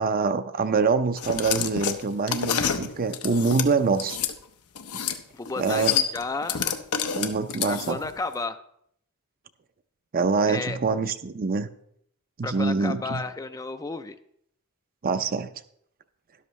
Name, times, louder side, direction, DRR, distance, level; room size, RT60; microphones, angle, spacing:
voice 1, 0.0-4.2 4.9-5.0 5.6-6.0 7.1-8.0 10.1-11.7 12.4-13.2 15.0-15.5, right 4 dB, 40° right, 11 dB, 0.5 m, -25 dB
sound 1, 1.2-4.3 4.8-5.2 5.5-8.1, left 8 dB, 80° left, 0.8 m, -28 dB
voice 2, 5.3-6.6 7.6-8.6 10.5-10.8 12.4-14.2, left 3 dB, 15° left, 10 dB, 0.4 m, -32 dB
12.5 x 11.5 x 3.2 m, 0.70 s
head